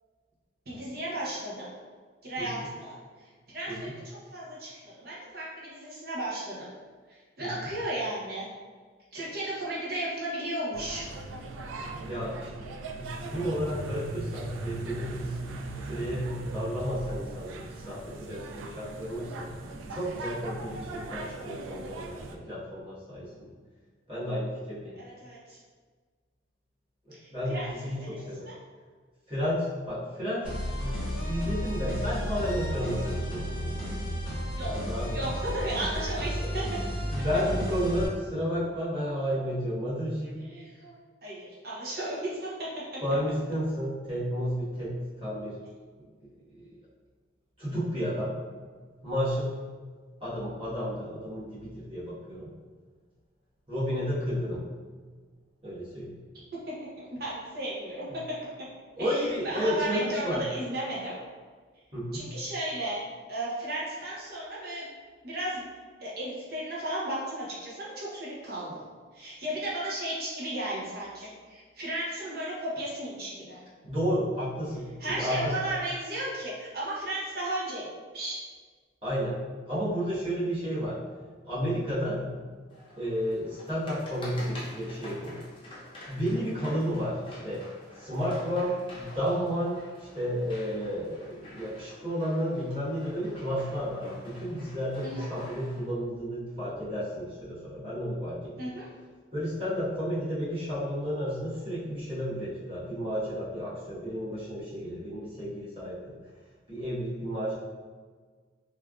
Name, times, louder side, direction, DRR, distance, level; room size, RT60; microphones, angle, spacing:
voice 1, 0.7-1.7 2.2-3.0 3.5-4.0 4.3-6.7 7.4-8.5 9.1-11.1 25.0-25.6 27.2-28.5 34.6-34.7 35.1-36.6 40.4-40.9 41.2-42.7 56.7-58.0 59.0-61.2 62.1-63.0 63.3-64.9 65.2-65.6 66.0-68.8 69.1-73.6 75.0-77.9 78.1-78.4 95.0-95.3 98.6-98.8, right 1 dB, 50° right, -6 dB, 0.7 m, -34 dB
sound 1, 10.7-22.4, right 2 dB, 90° right, 0.3 m, -39 dB
voice 2, 11.9-15.3 15.9-19.5 19.9-23.5 24.1-25.0 27.1-28.4 29.3-31.0 31.3-33.8 34.6-35.2 37.1-40.4 43.0-45.6 46.5-46.7 47.6-48.3 49.0-49.5 50.2-52.5 53.7-54.6 55.6-56.1 59.0-60.4 61.9-62.2 73.8-75.6 79.0-79.4 79.7-81.0 81.4-82.4 83.0-85.3 86.1-87.6 87.9-98.5 99.3-106.2 106.7-107.5, equal, 30° right, -11 dB, 1.1 m, -32 dB
sound 2, 30.4-38.1, equal, 5° right, 1.1 m, -32 dB
sound 3, 82.7-95.8, left 1 dB, 30° left, 0.6 m, -48 dB
3.3 x 2.4 x 2.3 m, 1.5 s
head